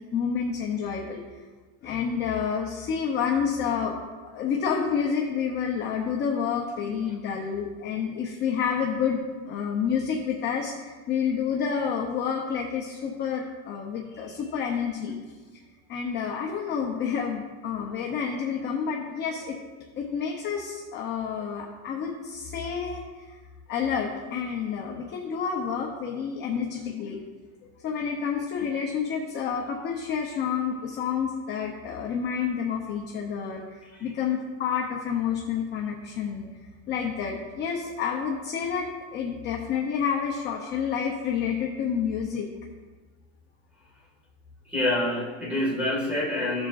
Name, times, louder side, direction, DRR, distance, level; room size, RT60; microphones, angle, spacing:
voice 1, 0.1-1.4 1.8-4.0 4.3-15.2 15.9-19.6 20.0-23.4 23.7-27.2 27.6-36.5 36.9-42.5, left 7 dB, 25° left, 0 dB, 0.6 m, -29 dB
voice 2, 44.7-46.7, left 1 dB, 5° right, -4 dB, 1.8 m, -27 dB
15.0 x 7.2 x 2.5 m, 1.4 s
cardioid pair, 165°, 43 cm